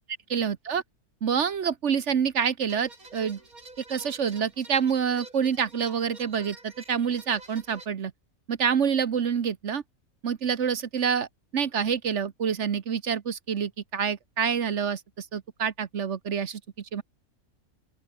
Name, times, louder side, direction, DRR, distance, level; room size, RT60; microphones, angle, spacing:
voice 1, 0.3-0.8 1.2-3.4 3.9-8.1 8.5-9.8 10.2-11.3 11.5-17.0, right 7 dB, 55° right, 1.3 m, -27 dB
sound 1, 2.7-7.9, right 2 dB, 80° right, 5.9 m, -48 dB
open air
omnidirectional pair, 1.5 m